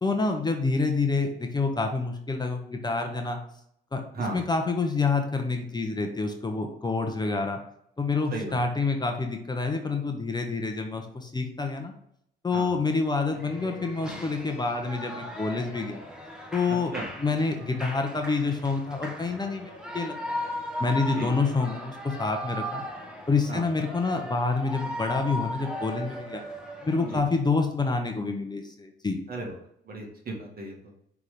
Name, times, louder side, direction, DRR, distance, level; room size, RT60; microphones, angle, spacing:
voice 1, 0.0-3.4 3.9-7.6 8.0-11.9 12.4-16.0 16.5-20.5 20.8-22.8 23.3-26.4 26.8-29.2, left 3 dB, 20° left, 4 dB, 0.9 m, -27 dB
voice 2, 4.1-4.5 8.3-8.6 12.5-12.8 16.9-17.1 21.1-21.3 23.5-23.6 27.1-27.2 29.3-29.6 29.9-30.9, right 2 dB, 50° right, 0 dB, 1.9 m, -35 dB
Shout / Cheering, 13.3-27.2, left 1 dB, 5° right, 1.3 m, -37 dB
5.7 x 3.6 x 5.0 m, 0.72 s
cardioid pair, 90°, 20 cm